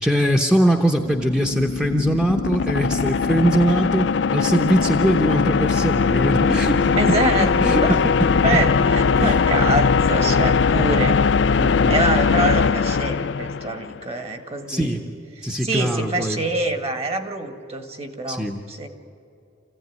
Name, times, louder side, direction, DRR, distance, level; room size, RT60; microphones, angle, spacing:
voice 1, 0.0-6.9 7.4-8.1 8.5-8.6 9.1-9.4 10.8-10.9 11.6-12.0 14.7-15.0 15.4-16.4 18.3-18.6, equal, 5° right, 2 dB, 0.9 m, -21 dB
sound 1, 0.8-14.0, left 5 dB, 70° left, 0.5 m, -20 dB
voice 2, 7.0-8.0 8.4-11.2 11.9-14.9 15.6-18.9, right 2 dB, 30° right, 7 dB, 1.7 m, -25 dB
26.5 x 16.0 x 9.5 m, 2.6 s
head